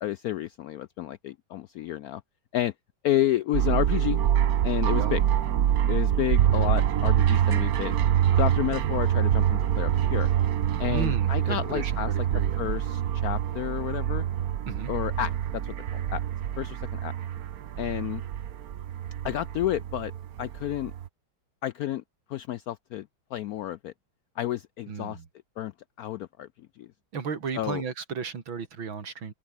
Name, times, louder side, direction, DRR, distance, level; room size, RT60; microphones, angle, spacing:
voice 1, 0.0-2.2 2.5-2.7 3.0-4.2 4.6-5.2 5.9-8.0 8.4-10.3 10.8-12.1 12.6-14.2 14.9-16.2 16.6-17.1 17.8-18.2 19.2-20.1 20.4-20.9 21.6-22.0 22.3-23.9 24.4-25.2 25.6-25.7 26.0-26.5 26.8-26.9 27.6-27.8, left 13 dB, 80° left, 0.8 m, -30 dB
sound 1, 3.5-21.1, right 10 dB, 55° right, 1.2 m, -25 dB
voice 2, 10.9-12.7 14.7-14.9 24.9-25.3 27.1-29.3, right 6 dB, 90° right, 3.4 m, -34 dB
open air
omnidirectional pair, 2.1 m